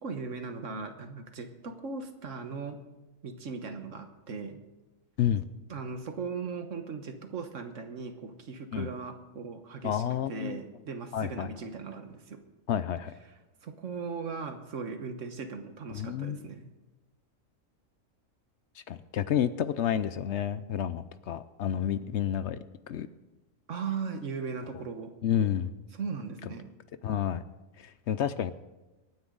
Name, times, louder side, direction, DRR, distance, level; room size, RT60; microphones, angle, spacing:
voice 1, 0.0-2.8 3.2-4.6 5.7-12.4 13.6-16.7 23.7-25.1 25.9-26.7, right 5 dB, 65° right, 7 dB, 1.6 m, -38 dB
voice 2, 9.8-10.6 11.1-11.5 12.7-13.1 15.9-16.5 18.9-22.6 22.9-23.1 25.2-25.7 27.0-27.4 27.8-28.5, left 9 dB, 65° left, 13 dB, 0.8 m, -30 dB
25.0 x 9.6 x 3.9 m, 1.1 s
omnidirectional pair, 1.4 m